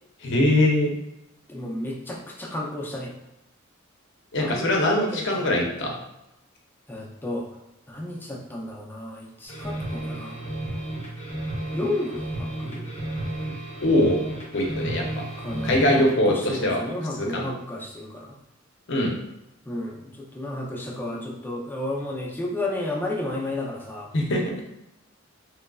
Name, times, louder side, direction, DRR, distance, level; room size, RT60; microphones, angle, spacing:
voice 1, 0.2-1.0 4.3-5.9 13.8-14.2 14.5-15.2 15.6-16.8 17.1-17.4 18.9-19.2 24.1-24.6, left 1 dB, 60° left, 0 dB, 0.6 m, -22 dB
voice 2, 1.5-3.1 4.4-5.6 6.9-7.6 7.9-10.4 11.7-12.8 15.4-18.3 19.7-24.1, left 1 dB, 10° left, -3 dB, 0.5 m, -32 dB
sound 1, 9.5-16.2, right 1 dB, 30° left, 0.9 m, -32 dB
3.1 x 2.4 x 2.2 m, 0.87 s
head